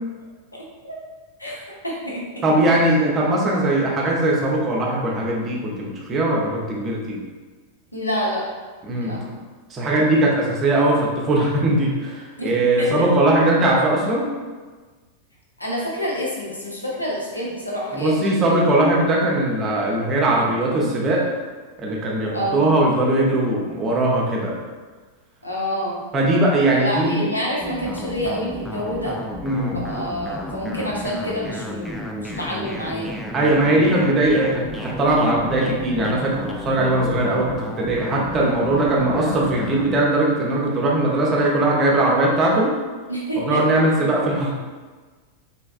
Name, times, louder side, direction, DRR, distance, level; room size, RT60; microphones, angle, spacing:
voice 1, 1.8-2.5 7.9-8.4 9.0-9.2 12.4-12.9 15.6-18.4 22.3-22.6 25.4-26.0 26.7-29.1 29.7-33.1 38.4-38.7 43.1-43.6, equal, 85° left, -4 dB, 0.7 m, -28 dB
voice 2, 2.4-7.2 8.9-9.3 9.7-14.3 17.9-21.2 21.8-24.5 26.1-27.3 29.4-29.8 33.3-42.7 43.4-44.5, right 1 dB, 25° right, -3 dB, 0.7 m, -20 dB
sound 1, 27.6-40.0, left 1 dB, 5° left, 0.3 m, -32 dB
3.2 x 2.8 x 2.4 m, 1.4 s
figure-of-eight pair, 90°, 0 cm